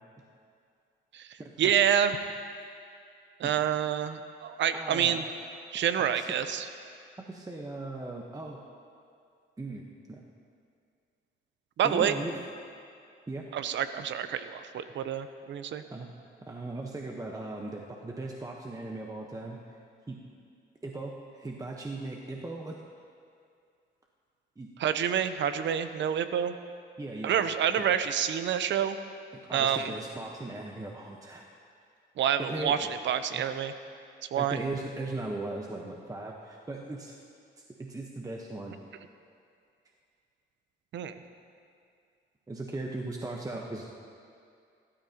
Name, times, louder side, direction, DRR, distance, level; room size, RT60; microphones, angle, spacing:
voice 1, 1.6-2.2 3.4-5.2 5.7-6.7 11.8-12.1 13.5-15.8 24.8-26.5 27.2-29.0 29.5-29.9 32.2-33.7 34.3-34.6 40.9-41.1, right 9 dB, 65° right, 10 dB, 0.8 m, -28 dB
voice 2, 4.7-5.2 6.0-6.3 7.2-8.6 9.6-10.2 11.8-12.4 13.3-13.4 15.9-16.1 16.5-19.8 20.1-20.2 20.8-22.7 24.6-24.7 26.0-26.1 27.0-27.4 27.8-27.9 29.5-31.5 32.4-32.9 33.3-33.4 34.4-37.2 37.8-38.7 42.5-43.9, right 2 dB, 15° right, 0 dB, 1.1 m, -38 dB
21.0 x 13.0 x 2.9 m, 2.3 s
cardioid pair, 90°, 20 cm